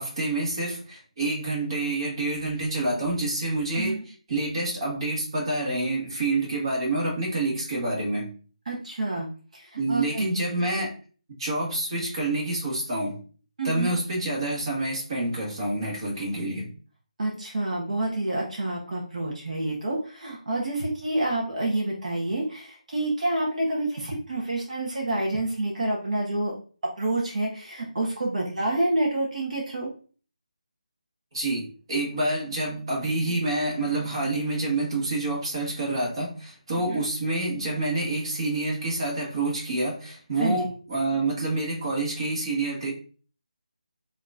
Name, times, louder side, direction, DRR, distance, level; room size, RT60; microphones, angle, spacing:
voice 1, 0.0-4.0 4.3-8.3 9.8-10.9 11.4-13.2 13.6-16.7 31.3-42.9, right 2 dB, 40° right, -2 dB, 1.5 m, -28 dB
voice 2, 3.7-4.0 8.7-9.3 9.5-10.4 13.6-13.9 17.2-26.5 27.0-29.9 36.7-37.1 40.4-40.7, right 2 dB, 60° right, -2 dB, 1.1 m, -28 dB
4.9 x 2.9 x 2.4 m, 0.40 s
figure-of-eight pair, 165°, 4 cm